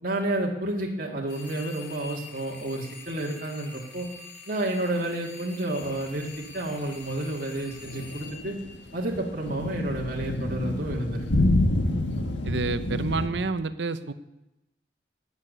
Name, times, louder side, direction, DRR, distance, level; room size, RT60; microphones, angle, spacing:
voice 1, 0.0-4.1 4.5-8.6 8.9-11.3, right 1 dB, 50° right, -2 dB, 2.1 m, -30 dB
sound 1, 1.3-9.5, left 4 dB, 65° left, 2.2 m, -46 dB
sound 2, 7.8-13.3, left 1 dB, 85° left, 1.5 m, -27 dB
voice 2, 12.4-14.1, right 3 dB, 80° right, 12 dB, 0.7 m, -29 dB
18.5 x 6.9 x 6.7 m, 0.93 s
head